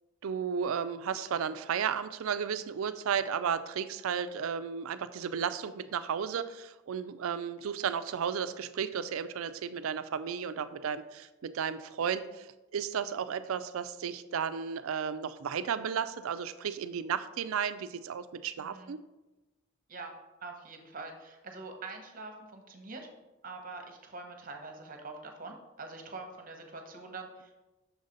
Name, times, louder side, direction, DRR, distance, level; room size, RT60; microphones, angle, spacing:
voice 1, 0.2-19.0, right 7 dB, 75° right, 12 dB, 0.4 m, -34 dB
voice 2, 18.6-18.9 19.9-20.1 20.4-23.1 23.4-27.5, right 3 dB, 40° right, 4 dB, 0.9 m, -44 dB
6.2 x 4.0 x 5.1 m, 1.1 s
head